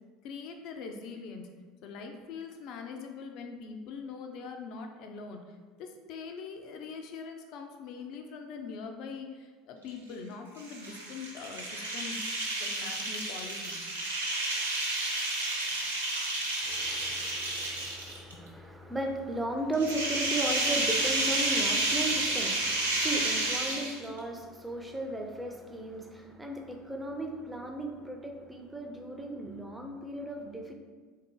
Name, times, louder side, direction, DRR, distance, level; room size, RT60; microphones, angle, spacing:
voice 1, 0.2-1.5 1.8-12.3 12.6-13.9 17.1-17.2 18.3-18.5, left 5 dB, 55° left, 4 dB, 0.5 m, -42 dB
sound 1, 10.6-18.3 19.7-24.2, right 2 dB, 85° right, 0.7 m, -31 dB
voice 2, 16.6-30.7, right 1 dB, 10° right, 3 dB, 0.6 m, -36 dB
3.6 x 2.7 x 3.8 m, 1.4 s
figure-of-eight pair, 70°, 0 cm